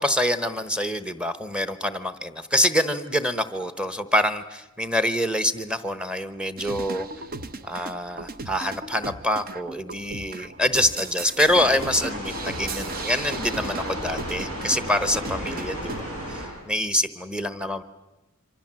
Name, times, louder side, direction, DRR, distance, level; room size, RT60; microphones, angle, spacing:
voice 1, 0.0-7.1 7.6-17.8, left 1 dB, 5° right, 12 dB, 1.0 m, -26 dB
sound 1, 6.6-16.0, right 3 dB, 40° right, 0.9 m, -37 dB
sound 2, 11.4-16.5, equal, 70° right, 7.8 m, -33 dB
26.5 x 25.5 x 7.6 m, 1.1 s
head